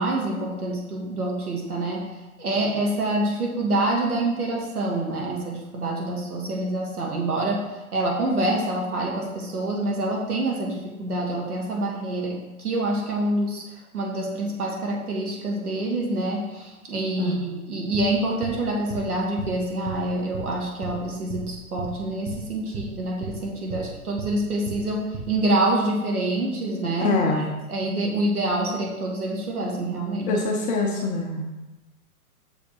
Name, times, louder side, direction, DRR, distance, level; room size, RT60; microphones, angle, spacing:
voice 1, 0.0-2.0 2.4-7.6 7.9-13.6 13.9-27.2 27.7-30.4, right 1 dB, 75° right, -1 dB, 2.2 m, -26 dB
sound 1, 17.9-18.1 18.4-18.6 18.9-19.1 19.4-19.5 19.8-20.0 20.3-20.5 20.8-21.0 21.3-21.5 21.8-21.9 22.3-22.4 22.7-22.9 23.2-23.4 23.7-23.9 24.2-24.3 24.7-24.8 25.1-25.3, right 5 dB, 15° right, 0.8 m, -34 dB
voice 2, 27.0-27.5 30.3-31.4, left 3 dB, 15° left, 0 dB, 0.7 m, -24 dB
6.5 x 5.1 x 4.6 m, 1.1 s
figure-of-eight pair, 120°, 45 cm